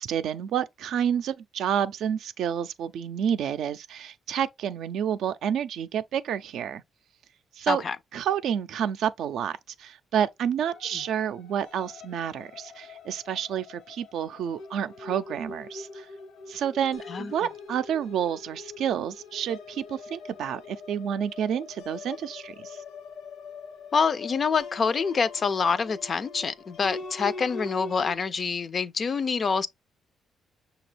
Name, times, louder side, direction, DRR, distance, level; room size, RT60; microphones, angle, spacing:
voice 1, 0.0-6.8 7.6-7.8 8.1-16.1 16.5-22.8, right 9 dB, 75° right, 0.4 m, -29 dB
sound 1, 10.6-28.1, left 4 dB, 75° left, 0.7 m, -43 dB
voice 2, 23.9-29.7, left 5 dB, 45° left, 0.4 m, -26 dB
5.9 x 2.3 x 3.2 m
cardioid pair, 90°, 0 cm